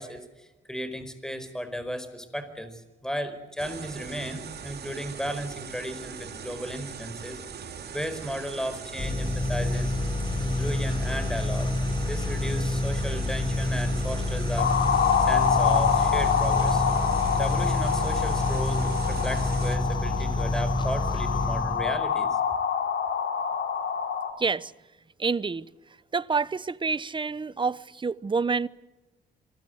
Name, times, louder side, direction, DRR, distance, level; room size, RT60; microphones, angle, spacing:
voice 1, 0.0-9.9 10.4-11.7 12.0-14.7 15.3-16.8 17.4-22.4, equal, 5° left, 4.8 m, -35 dB
sound 1, 3.6-19.8, right 6 dB, 55° right, 3.0 m, -40 dB
sound 2, 9.0-22.0, left 2 dB, 25° left, 5.4 m, -28 dB
sound 3, 14.6-24.3, left 7 dB, 65° left, 4.3 m, -26 dB
voice 2, 24.4-24.7 25.2-25.7 26.1-28.7, right 4 dB, 25° right, 0.9 m, -27 dB
26.0 x 21.0 x 8.0 m
cardioid pair, 90°, 20 cm